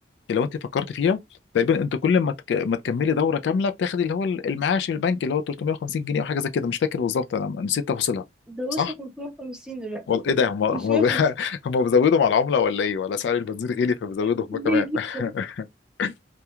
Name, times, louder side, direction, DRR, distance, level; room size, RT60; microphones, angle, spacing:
voice 1, 0.3-1.2 1.5-8.2 8.8-8.9 10.1-15.5 16.0-16.1, left 6 dB, 70° left, 0.3 m, -23 dB
voice 2, 8.5-10.1 10.7-11.2 14.5-15.0, equal, 5° right, 0.7 m, -30 dB
2.3 x 2.2 x 2.8 m
head